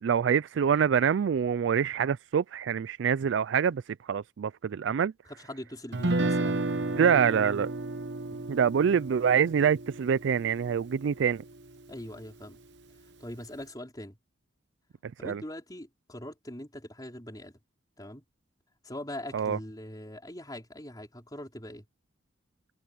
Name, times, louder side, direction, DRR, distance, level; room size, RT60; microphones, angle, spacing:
voice 1, 0.0-5.1 7.0-7.7 8.5-11.4 15.0-15.4 19.3-19.6, right 7 dB, 85° right, 0.4 m, -25 dB
voice 2, 5.4-7.0 8.3-8.4 11.9-12.6 13.2-14.2 15.2-17.6 18.0-18.2 18.8-21.8, left 1 dB, 20° left, 4.7 m, -42 dB
Guitar, 5.9-12.0, right 2 dB, 70° right, 0.9 m, -33 dB
head